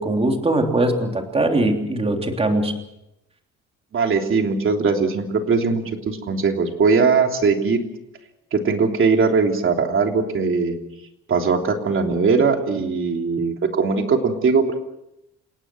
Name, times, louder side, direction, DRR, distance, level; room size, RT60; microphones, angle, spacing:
voice 1, 0.0-2.7, right 1 dB, 20° right, 3 dB, 3.3 m, -21 dB
voice 2, 3.9-7.8 8.5-10.8 11.3-14.8, right 4 dB, 40° right, 3 dB, 3.2 m, -20 dB
29.5 x 18.0 x 6.3 m, 0.85 s
cardioid pair, 150°, 31 cm